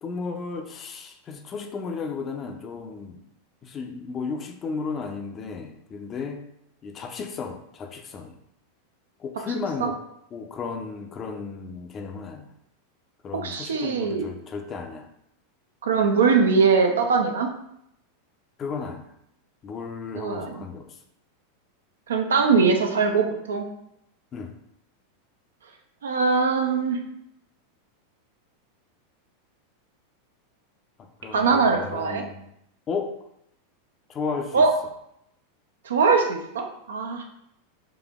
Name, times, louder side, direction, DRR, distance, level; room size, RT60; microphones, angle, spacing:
voice 1, 0.0-3.2 3.6-6.4 6.8-8.4 9.2-10.0 10.3-12.5 13.2-15.1 18.6-19.1 19.6-21.0 24.3-24.5 31.0-32.4 32.9-33.2 34.1-34.6, left 5 dB, 30° left, 4 dB, 0.5 m, -34 dB
voice 2, 13.4-14.3 15.8-17.5 20.1-20.7 22.1-23.6 26.0-27.0 31.3-32.2 34.5-34.7 35.8-37.2, right 5 dB, 70° right, 3 dB, 0.5 m, -21 dB
4.1 x 2.5 x 2.4 m, 0.76 s
figure-of-eight pair, 90°, 0 cm